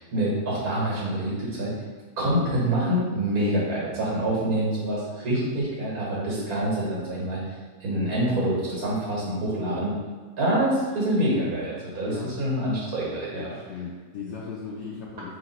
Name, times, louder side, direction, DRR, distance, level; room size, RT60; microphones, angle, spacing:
voice 1, 0.1-1.7 2.2-7.4 7.8-10.0 10.4-13.5, right 1 dB, 65° right, -5 dB, 1.8 m, -26 dB
voice 2, 13.4-15.4, left 5 dB, 70° left, -4 dB, 0.7 m, -37 dB
3.5 x 2.9 x 4.1 m, 1.4 s
omnidirectional pair, 1.6 m